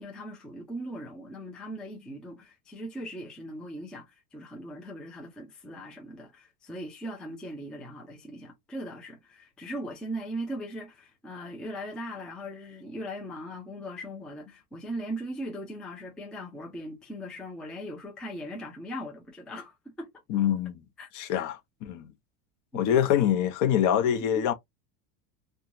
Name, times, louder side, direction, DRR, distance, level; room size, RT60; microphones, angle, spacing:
voice 1, 0.0-20.1 21.0-21.1 22.7-22.9 24.3-24.4, equal, ahead, 0.4 m, -39 dB
voice 2, 20.3-20.8 21.1-22.1 22.7-24.5, left 10 dB, 45° left, 0.7 m, -25 dB
2.9 x 2.3 x 2.5 m
supercardioid pair, 140°, 43 cm